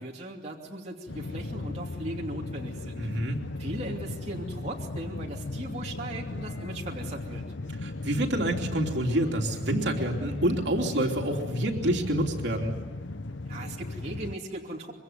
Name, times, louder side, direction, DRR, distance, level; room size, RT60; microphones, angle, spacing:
voice 1, 0.0-3.0 3.6-7.4 13.5-14.9, right 1 dB, 35° right, -2 dB, 2.7 m, -38 dB
sound 1, 1.1-14.4, left 2 dB, 85° left, 0.9 m, -37 dB
voice 2, 3.0-3.4 7.8-12.8, right 1 dB, 70° right, 1 dB, 3.1 m, -27 dB
25.5 x 23.5 x 9.5 m, 1.3 s
head